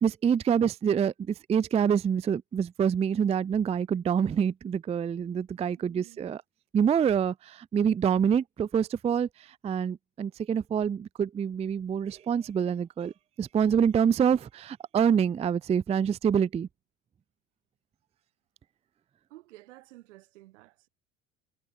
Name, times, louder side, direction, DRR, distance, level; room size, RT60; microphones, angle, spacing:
voice 1, 0.0-6.4 6.7-9.3 9.6-16.7, right 7 dB, 20° right, 0.4 m, -26 dB
voice 2, 5.8-6.4 19.3-20.9, right 18 dB, 85° right, 5.5 m, -52 dB
hypercardioid pair, 75°, 35 cm